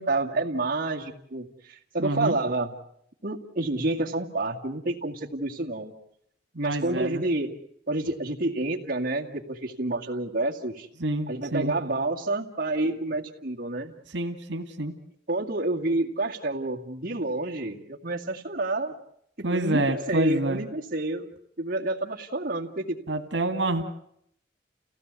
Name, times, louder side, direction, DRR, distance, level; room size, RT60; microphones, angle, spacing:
voice 1, 0.0-2.7 3.2-5.9 6.6-7.5 7.9-10.9 11.3-13.9 15.3-18.9 19.5-23.0, right 2 dB, 50° right, -1 dB, 2.3 m, -29 dB
voice 2, 2.0-2.3 6.5-7.2 11.0-11.7 14.1-14.9 19.4-20.7 23.1-23.8, right 1 dB, 85° right, 6 dB, 2.0 m, -27 dB
30.0 x 16.5 x 8.3 m, 0.73 s
head